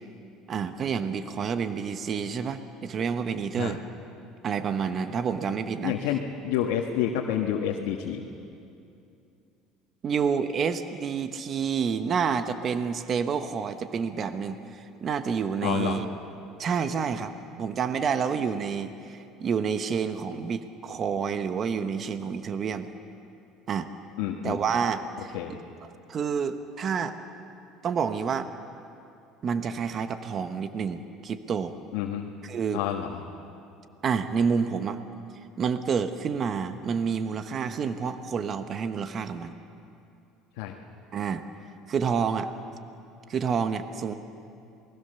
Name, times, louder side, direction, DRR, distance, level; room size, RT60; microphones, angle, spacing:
voice 1, 0.5-3.8 4.4-5.9 10.0-16.0 16.6-17.3 17.6-22.9 23.7-23.9 24.4-25.4 26.1-27.2 27.8-28.5 29.4-31.7 32.4-32.8 34.0-35.0 35.6-39.5 41.1-41.4 41.9-42.5 43.3-44.1, right 6 dB, 35° right, 10 dB, 1.1 m, -28 dB
voice 2, 5.8-8.2 15.6-16.0 24.2-24.6 25.3-25.5 31.9-32.3 32.7-33.2 40.6-40.7, left 10 dB, 85° left, 0 dB, 1.6 m, -29 dB
28.5 x 20.0 x 7.0 m, 2.7 s
cardioid pair, 125°, 0 cm